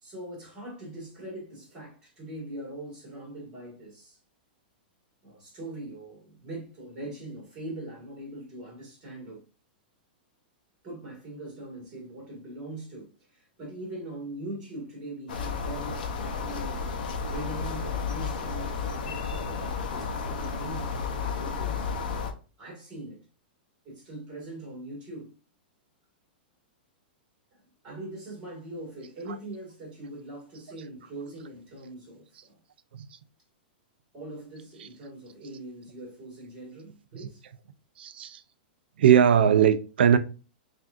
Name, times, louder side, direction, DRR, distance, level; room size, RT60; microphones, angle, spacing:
voice 1, 0.0-4.2 5.2-9.4 10.8-16.9 17.3-21.8 22.6-23.2 23.9-25.3 27.5-32.6 34.1-37.4, right 1 dB, 15° right, 1.8 m, -41 dB
sound 1, 15.3-22.3, left 5 dB, 60° left, 0.7 m, -32 dB
voice 2, 38.0-38.4 39.0-40.2, right 8 dB, 85° right, 0.4 m, -20 dB
6.0 x 2.6 x 2.5 m
supercardioid pair, 180°, 5 cm